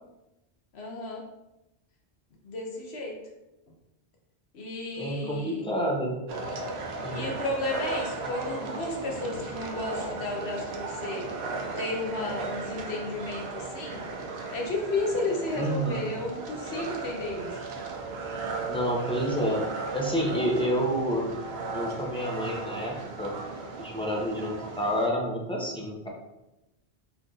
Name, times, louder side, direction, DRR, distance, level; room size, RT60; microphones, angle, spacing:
voice 1, 0.7-1.2 2.4-3.1 4.5-5.6 7.1-11.3 11.8-14.0 14.5-17.6, left 2 dB, 80° left, 0 dB, 1.1 m, -33 dB
voice 2, 4.9-6.2 6.5-6.6 7.0-7.3 15.6-16.0 18.7-19.7 19.9-21.3 21.7-23.3 23.8-26.1, equal, 5° left, -2 dB, 0.7 m, -29 dB
sound 1, 6.3-25.1, right 3 dB, 75° right, 0.9 m, -36 dB
4.7 x 2.6 x 3.9 m, 0.96 s
omnidirectional pair, 1.1 m